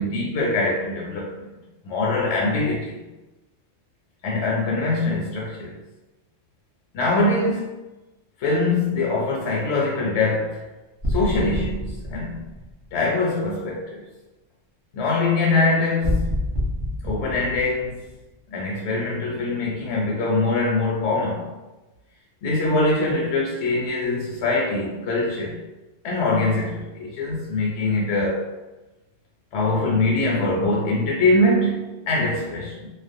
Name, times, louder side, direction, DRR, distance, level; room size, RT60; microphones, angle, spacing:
voice 1, 0.0-1.4 1.8-3.0 4.2-5.7 6.9-7.7 8.4-10.7 11.1-12.4 12.9-14.0 14.9-16.4 17.0-18.0 18.5-21.5 22.4-25.6 26.0-28.5 29.5-32.9, left 2 dB, 75° left, -3 dB, 0.9 m, -23 dB
sound 1, 11.0-13.3 16.0-18.6, left 1 dB, 35° right, 0.4 m, -27 dB
2.4 x 2.0 x 2.6 m, 1.1 s
omnidirectional pair, 1.3 m